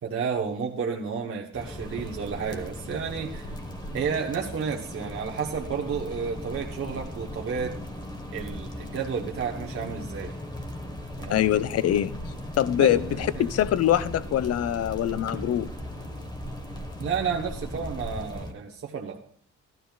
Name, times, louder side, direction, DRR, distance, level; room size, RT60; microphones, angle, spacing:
voice 1, 0.0-3.5 3.9-7.7 8.3-10.3 11.2-11.4 12.8-13.4 17.0-19.2, right 6 dB, 45° right, -1 dB, 1.1 m, -31 dB
sound 1, 1.5-18.5, left 1 dB, 15° left, 1.3 m, -37 dB
voice 2, 11.3-12.1 12.6-15.7, left 11 dB, 55° left, 16 dB, 0.5 m, -24 dB
14.5 x 12.0 x 2.4 m, 0.63 s
cardioid pair, 90°, 30 cm